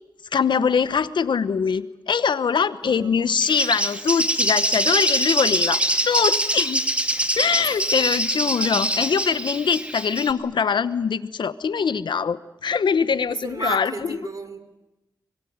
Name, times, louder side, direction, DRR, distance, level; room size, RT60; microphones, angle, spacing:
voice 1, 0.3-6.8 7.4-14.2, left 6 dB, 85° left, 14 dB, 1.0 m, -23 dB
voice 2, 2.8-3.3 7.6-7.8 8.6-8.8 13.3-14.6, right 3 dB, 50° right, 10 dB, 3.3 m, -33 dB
Bird, 3.4-10.3, right 1 dB, 15° right, 2.3 m, -24 dB
24.5 x 22.5 x 9.4 m, 0.97 s
wide cardioid pair, 75°, 8 cm